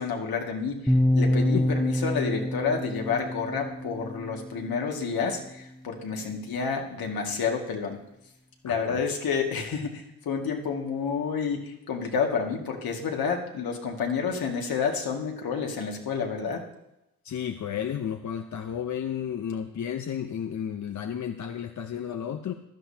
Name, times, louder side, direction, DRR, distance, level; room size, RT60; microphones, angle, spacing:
voice 1, 0.0-8.0 8.6-9.9 10.3-16.6, left 5 dB, 75° left, 1 dB, 2.1 m, -29 dB
sound 1, 0.9-4.9, left 1 dB, 5° left, 1.0 m, -26 dB
voice 2, 8.7-9.0 17.2-22.5, left 9 dB, 50° left, 6 dB, 0.8 m, -32 dB
15.5 x 11.5 x 2.8 m, 0.86 s
cardioid pair, 65°, 37 cm